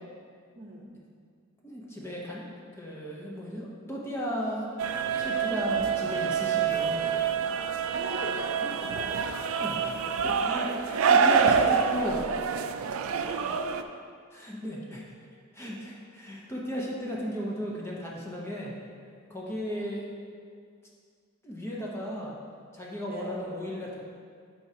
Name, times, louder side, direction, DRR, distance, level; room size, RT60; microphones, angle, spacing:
voice 1, 0.5-0.9 7.9-9.3 11.4-11.9 23.1-23.4, right 1 dB, 45° right, -1 dB, 0.8 m, -37 dB
voice 2, 1.6-2.4 2.8-4.7 5.1-7.1 9.6-9.9 10.2-12.5 13.1-13.5 14.3-15.0 15.5-18.8 19.3-20.1 21.4-22.4 22.7-24.0, equal, 10° left, -4 dB, 0.8 m, -35 dB
sound 1, 4.8-13.8, right 6 dB, 75° right, 0.4 m, -26 dB
11.0 x 4.9 x 2.9 m, 2.2 s
head